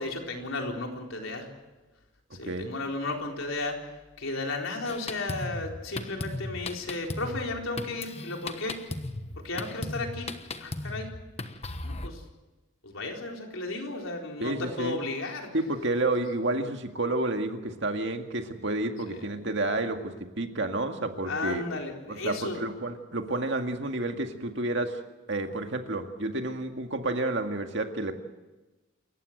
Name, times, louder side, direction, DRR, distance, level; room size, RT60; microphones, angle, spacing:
voice 1, 0.0-1.5 2.3-3.8 4.2-8.8 9.4-10.3 10.6-11.1 11.8-12.2 12.8-15.5 19.1-19.4 21.2-22.6, left 2 dB, 85° left, 2 dB, 4.1 m, -34 dB
Drum kit, 4.9-12.1, left 2 dB, 30° left, 1.1 m, -37 dB
voice 2, 14.4-15.0 15.5-21.6 22.1-25.0 25.3-28.2, right 2 dB, 60° right, 5 dB, 2.0 m, -30 dB
28.5 x 15.0 x 7.9 m, 1.1 s
head